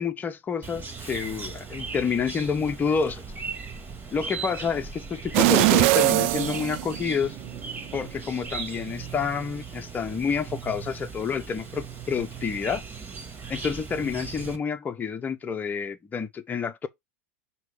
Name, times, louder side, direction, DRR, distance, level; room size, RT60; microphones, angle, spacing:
voice 1, 0.0-3.2 4.1-7.4 7.9-12.8 13.5-16.9, left 6 dB, 20° left, 1.0 m, -29 dB
Chirp tweet, 0.6-14.6, right 5 dB, 25° right, 1.9 m, -38 dB
sound 1, 5.3-7.5 7.9-8.0, right 19 dB, 60° right, 0.4 m, -21 dB
6.1 x 3.2 x 4.8 m
hypercardioid pair, 100°, 8 cm